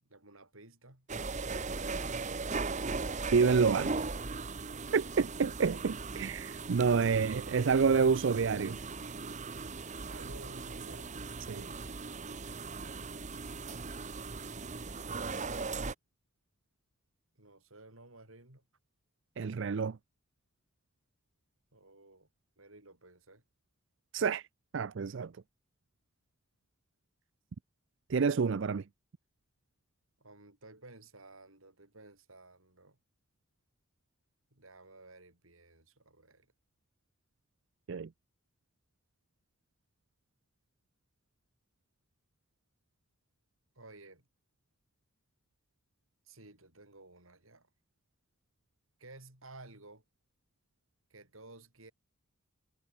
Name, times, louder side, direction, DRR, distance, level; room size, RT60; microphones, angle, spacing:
voice 1, 0.0-1.1 10.1-11.2 17.4-18.6 21.7-22.3 22.6-23.4 24.9-25.4 30.2-33.0 34.5-36.5 43.8-44.2 46.3-47.7 49.0-50.0 51.1-51.9, right 2 dB, 80° right, 7.2 m, -54 dB
sound 1, 1.1-15.9, right 4 dB, 35° right, 1.0 m, -38 dB
voice 2, 3.3-3.9 4.9-8.8 11.5-11.7 19.4-20.0 24.1-24.4 24.7-25.3 28.1-28.8 37.9-38.1, right 5 dB, 60° right, 0.5 m, -28 dB
head